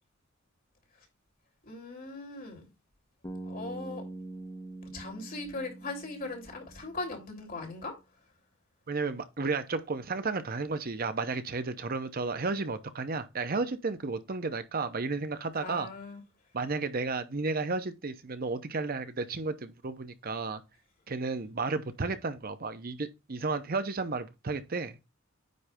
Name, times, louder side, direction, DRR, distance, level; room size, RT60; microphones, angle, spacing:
voice 1, 1.6-2.7 3.4-4.0 4.9-7.9 15.5-16.2, left 2 dB, 45° left, 3.1 m, -39 dB
Bass guitar, 3.2-7.3, right 2 dB, 20° left, 1.4 m, -44 dB
voice 2, 8.9-15.9 16.5-20.6 21.1-25.0, right 3 dB, 50° right, 0.8 m, -33 dB
9.4 x 3.3 x 5.1 m
head